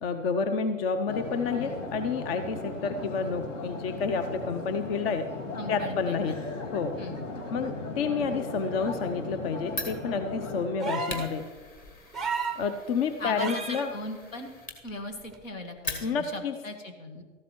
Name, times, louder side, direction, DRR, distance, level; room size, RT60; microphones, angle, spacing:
voice 1, 0.0-5.3 5.7-6.4 6.7-6.9 7.5-11.4 12.6-13.9 16.0-16.5, left 5 dB, 50° left, 9 dB, 0.8 m, -29 dB
sound 1, 1.1-10.9, left 3 dB, 70° left, 2.1 m, -37 dB
voice 2, 5.5-6.4 7.0-7.2 13.2-14.5 14.8-17.2, left 2 dB, 85° left, 5 dB, 1.8 m, -38 dB
Fire, 9.7-16.5, left 2 dB, 20° left, 1.3 m, -42 dB
sound 2, 10.8-11.3 12.1-12.6 13.4-13.9 15.3-15.4, right 4 dB, ahead, 0.5 m, -32 dB
13.5 x 11.5 x 3.1 m, 1.5 s
hypercardioid pair, 125°, 39 cm